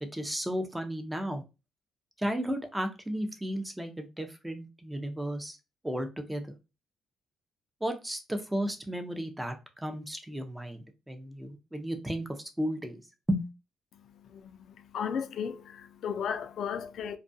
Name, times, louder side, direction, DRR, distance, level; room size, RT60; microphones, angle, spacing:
voice 1, 0.0-1.4 2.2-5.6 5.8-6.5 7.8-13.0 13.3-13.5, equal, 10° right, 0.6 m, -34 dB
voice 2, 14.9-17.2, left 7 dB, 70° left, 0.3 m, -34 dB
2.3 x 2.2 x 2.6 m
cardioid pair, 90°, 0 cm